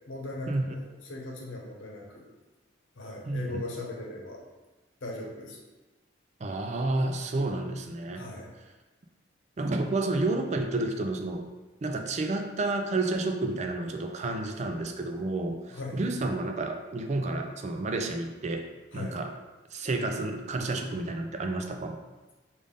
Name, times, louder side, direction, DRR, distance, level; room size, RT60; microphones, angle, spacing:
voice 1, 0.1-2.2 3.0-4.4 5.0-5.6 8.1-8.5 15.7-16.0 18.9-19.2, left 2 dB, 85° left, -1 dB, 0.9 m, -39 dB
voice 2, 6.4-8.3 9.6-11.5 11.8-18.7 18.9-19.3 19.7-22.0, right 2 dB, 35° right, 4 dB, 0.4 m, -30 dB
5.2 x 2.5 x 3.5 m, 1.2 s
head